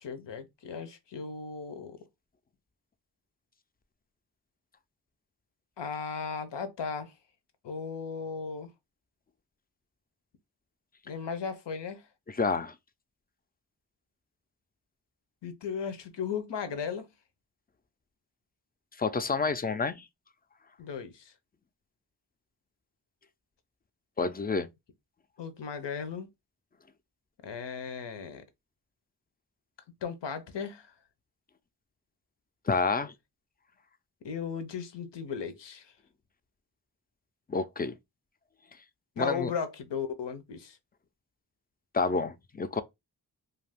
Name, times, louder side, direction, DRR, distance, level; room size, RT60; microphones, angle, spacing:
voice 1, 0.0-2.0 5.8-7.1 7.6-8.7 11.1-12.1 15.4-17.1 20.8-21.3 25.4-26.3 27.4-28.4 30.0-30.9 34.2-35.9 39.2-40.8, left 6 dB, 90° left, 0.7 m, -36 dB
voice 2, 12.3-12.7 19.0-20.1 24.2-24.7 32.7-33.1 37.5-38.0 39.2-39.5 41.9-42.8, left 4 dB, 25° left, 0.3 m, -29 dB
2.5 x 2.3 x 3.4 m
wide cardioid pair, 60°, 41 cm